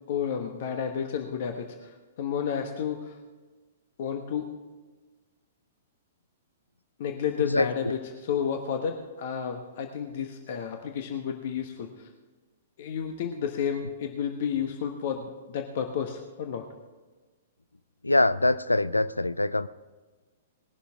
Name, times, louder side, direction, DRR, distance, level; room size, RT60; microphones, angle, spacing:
voice 1, 0.1-3.1 4.0-4.5 7.0-12.1 12.8-16.7, left 7 dB, 50° left, 5 dB, 1.2 m, -31 dB
voice 2, 7.4-7.7 18.0-19.7, left 2 dB, 85° left, 17 dB, 0.5 m, -24 dB
19.5 x 11.5 x 3.6 m, 1.3 s
figure-of-eight pair, 110°, 0 cm